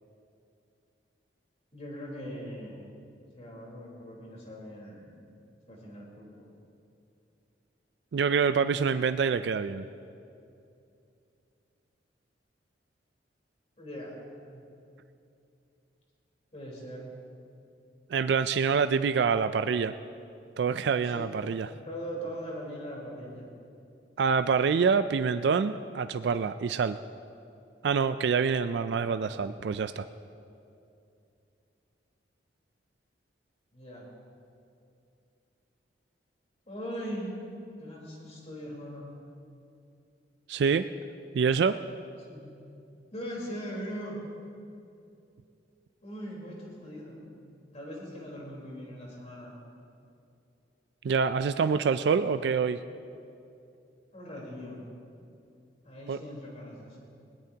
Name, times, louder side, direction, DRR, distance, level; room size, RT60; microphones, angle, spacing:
voice 1, 1.7-2.9 3.4-5.2 5.7-6.5 13.8-14.1 14.4-14.6 16.5-17.1 21.1-21.3 21.7-23.5 33.7-34.1 36.7-37.4 37.8-39.1 42.3-42.5 43.1-44.2 46.0-47.2 47.7-49.5 54.1-54.8 55.8-57.0, equal, 40° left, -3 dB, 4.0 m, -40 dB
voice 2, 8.1-9.8 18.1-19.9 20.6-21.7 24.2-27.0 27.8-30.0 40.5-40.8 41.3-41.8 51.0-52.8 56.1-56.2, right 5 dB, 70° right, 11 dB, 0.4 m, -26 dB
20.5 x 17.5 x 2.9 m, 2.6 s
head